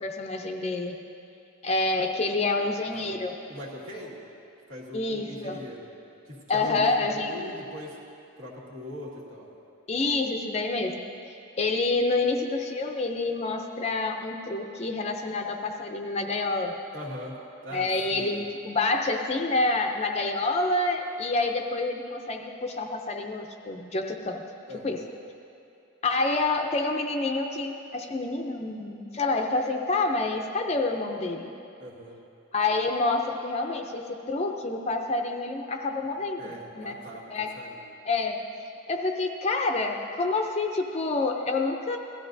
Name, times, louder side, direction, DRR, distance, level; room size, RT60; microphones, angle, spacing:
voice 1, 0.0-0.9 1.6-3.3 4.9-5.6 6.5-7.3 9.9-10.9 11.6-16.7 17.7-24.4 24.8-25.0 26.0-31.5 32.5-34.0 34.3-36.9 37.3-37.6 38.1-38.4 38.9-42.0, left 3 dB, 30° left, 3 dB, 0.5 m, -28 dB
voice 2, 3.5-4.2 4.7-5.9 6.3-8.0 8.4-9.5 16.9-17.4 17.6-18.4 24.7-25.0 31.8-32.2 36.4-38.2, left 1 dB, 70° right, -4 dB, 2.0 m, -41 dB
17.0 x 13.0 x 2.7 m, 2.6 s
head